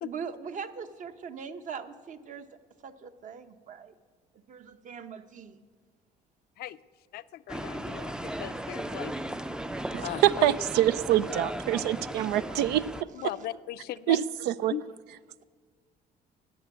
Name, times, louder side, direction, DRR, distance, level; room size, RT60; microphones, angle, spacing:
voice 1, 0.0-2.5 2.8-3.9 4.3-5.6 13.3-13.5, right 6 dB, 50° right, 9 dB, 0.9 m, -41 dB
voice 2, 7.1-9.1 10.0-10.2 13.1-14.2 14.7-14.8, left 13 dB, 70° left, 15 dB, 0.5 m, -38 dB
sound 1, 7.5-13.0, right 1 dB, 5° right, 0.4 m, -36 dB
voice 3, 9.9-12.8 14.1-14.2 14.5-14.7, right 13 dB, 90° right, 15 dB, 0.5 m, -25 dB
12.0 x 8.4 x 9.2 m, 1.5 s
cardioid pair, 110°, 17 cm